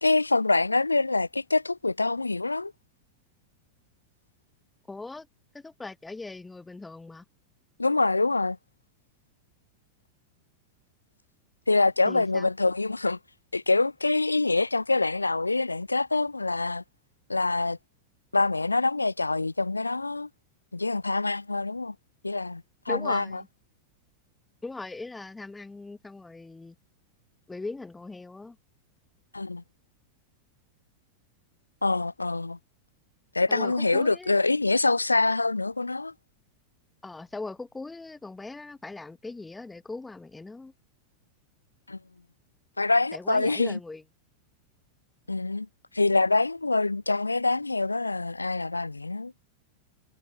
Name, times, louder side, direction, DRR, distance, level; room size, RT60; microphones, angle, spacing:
voice 1, 0.0-2.7 7.8-8.6 11.7-13.2 13.5-16.8 17.3-17.8 18.3-20.3 20.7-21.9 22.2-23.2 29.3-29.6 31.8-32.6 33.3-36.1 41.9-42.0 42.8-43.8 45.3-45.7 45.9-49.3, left 3 dB, 80° left, 0.5 m, -25 dB
voice 2, 4.9-5.3 5.5-7.2 12.1-12.5 22.9-23.5 24.6-26.7 27.5-28.6 33.5-34.3 37.0-40.7 43.1-44.0, left 3 dB, 10° left, 0.8 m, -39 dB
figure-of-eight pair, 90°, 0 cm